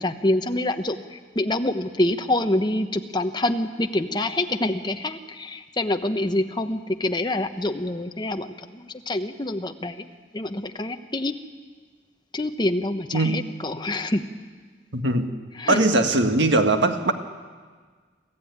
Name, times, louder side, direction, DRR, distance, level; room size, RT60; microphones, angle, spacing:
voice 1, 0.0-10.1 10.3-11.3 12.3-14.2 15.5-15.8, left 1 dB, 25° left, 7 dB, 1.0 m, -26 dB
voice 2, 13.1-13.5 14.9-15.3 15.7-17.1, right 2 dB, 80° right, 6 dB, 1.7 m, -20 dB
24.5 x 14.0 x 9.5 m, 1.5 s
head